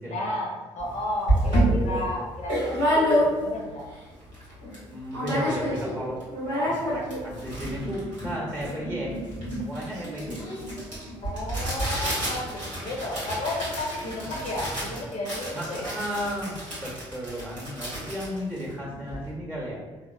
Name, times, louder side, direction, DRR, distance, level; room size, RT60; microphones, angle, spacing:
voice 1, 0.0-2.8 3.2-3.9 5.0-5.2 11.2-15.9, left 1 dB, 50° left, -2 dB, 0.6 m, -33 dB
sound 1, 0.8-0.9 1.3-3.7 4.1-4.2 4.3-4.8 5.1-5.9 6.2-19.3, equal, 90° right, 0.9 m, -28 dB
voice 2, 1.3-2.0 4.9-6.2 6.6-9.2 9.6-10.4 14.3-14.4 15.5-16.5 16.8-19.8, equal, 10° right, -4 dB, 0.8 m, -34 dB
3.4 x 2.3 x 2.3 m, 1.3 s
figure-of-eight pair, 45°, 15 cm